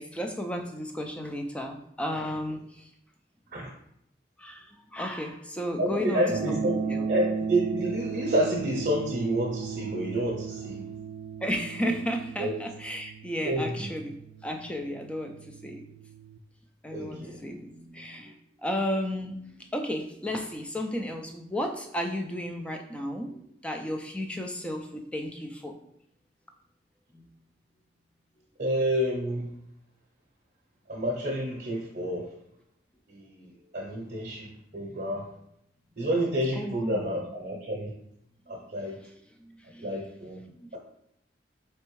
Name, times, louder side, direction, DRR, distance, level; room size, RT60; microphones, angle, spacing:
voice 1, 0.0-2.9 4.4-7.1 11.4-15.8 16.8-18.3 18.6-25.8 27.1-27.2 36.6-37.1 38.8-39.1 39.7-39.9 40.5-40.8, equal, 5° left, 4 dB, 0.3 m, -34 dB
voice 2, 5.8-10.8 11.8-11.9 12.4-12.5 13.4-13.9 16.9-17.4 28.6-29.5 30.9-32.3 33.1-35.3 36.0-37.9 38.5-39.0 39.8-40.4, right 1 dB, 50° right, -3 dB, 0.7 m, -29 dB
sound 1, 6.3-16.4, right 6 dB, 80° right, 0.4 m, -36 dB
4.3 x 3.3 x 3.1 m, 0.77 s
head